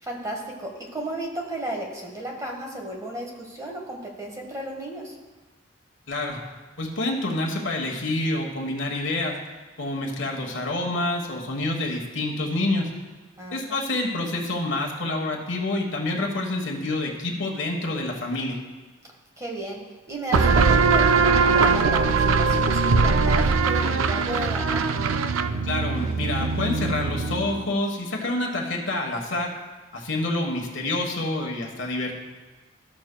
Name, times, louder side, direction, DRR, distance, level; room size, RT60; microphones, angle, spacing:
voice 1, 0.0-5.2 13.4-13.8 19.4-19.8 20.1-24.9, right 1 dB, 15° right, -1 dB, 1.1 m, -34 dB
voice 2, 6.1-6.4 6.8-9.4 9.8-12.9 13.5-18.6 25.6-29.5 29.9-32.1, left 2 dB, 65° left, 1 dB, 1.3 m, -27 dB
sound 1, 20.3-27.7, right 4 dB, 80° right, 0.4 m, -21 dB
14.0 x 6.2 x 2.2 m, 1.3 s
head